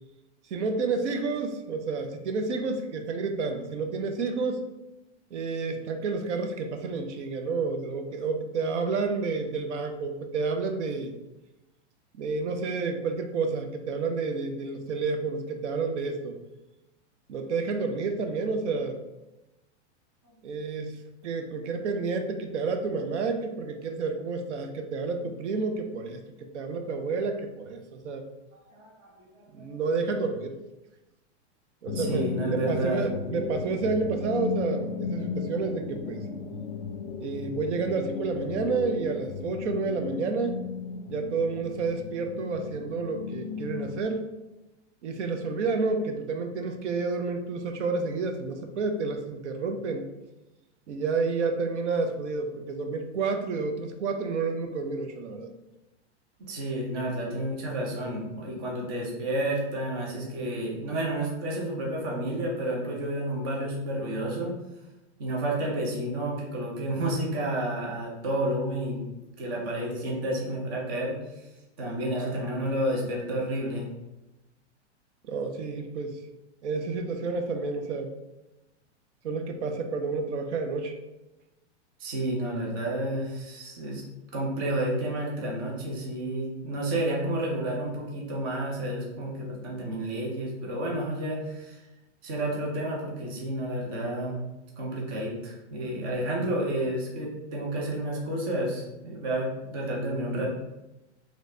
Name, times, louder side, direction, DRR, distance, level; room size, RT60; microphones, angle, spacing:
voice 1, 0.5-4.6 5.3-11.1 12.2-16.4 17.3-19.0 20.4-20.9 21.2-26.2 26.5-28.2 29.5-30.5 31.8-36.2 37.2-40.6 41.1-44.3 45.0-50.0 50.9-55.5 75.2-76.2 76.6-78.1 79.2-80.9, right 4 dB, 80° right, 5 dB, 0.7 m, -30 dB
voice 2, 28.5-29.7 31.9-33.1 56.5-64.5 65.2-69.0 69.4-71.4 71.8-73.9 82.0-84.0 84.3-91.8 92.2-94.4 94.8-100.5, right 1 dB, 20° right, -2 dB, 0.4 m, -30 dB
sound 1, 31.9-44.0, left 5 dB, 65° left, 0.6 m, -35 dB
3.8 x 3.2 x 3.2 m, 0.99 s
supercardioid pair, 175°, 35 cm